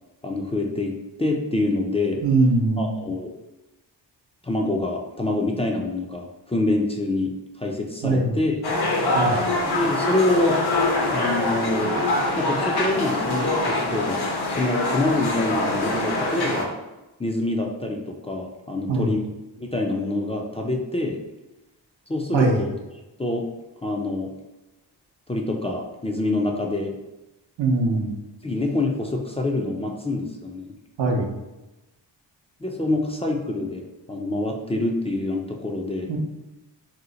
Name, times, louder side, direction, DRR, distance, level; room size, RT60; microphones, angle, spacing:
voice 1, 0.2-0.9 1.2-2.2 2.8-3.3 4.4-7.3 7.6-8.6 9.7-10.6 11.1-12.0 12.4-14.2 14.6-16.7 17.2-19.3 19.6-21.2 22.1-22.7 23.2-23.5 23.8-24.3 25.3-26.9 28.4-30.7 32.6-36.1, left 2 dB, 15° left, 1 dB, 0.4 m, -26 dB
voice 2, 2.2-2.9 8.0-8.4 9.1-9.4 18.9-19.1 22.3-22.6 27.6-28.1 31.0-31.4 36.1-36.2, right 2 dB, 85° right, 1 dB, 0.7 m, -21 dB
sound 1, 8.6-16.6, left 2 dB, 60° left, 0.8 m, -24 dB
2.8 x 2.0 x 3.8 m, 1.0 s
cardioid pair, 65°, 44 cm